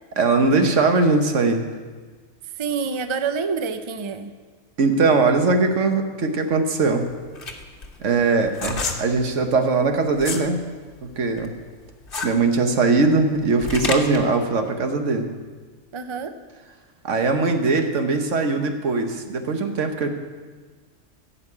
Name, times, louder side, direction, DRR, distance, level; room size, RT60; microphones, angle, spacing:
voice 1, 0.2-1.6 4.8-7.1 8.0-10.6 11.0-11.5 12.2-15.3 17.0-20.1, right 3 dB, 75° right, 5 dB, 1.4 m, -20 dB
voice 2, 2.6-4.3 15.9-16.3, right 5 dB, 35° right, 9 dB, 0.5 m, -27 dB
sound 1, 6.9-10.5 10.9-14.3, left 3 dB, 45° left, 1.3 m, -30 dB
15.5 x 5.9 x 8.4 m, 1.5 s
omnidirectional pair, 1.3 m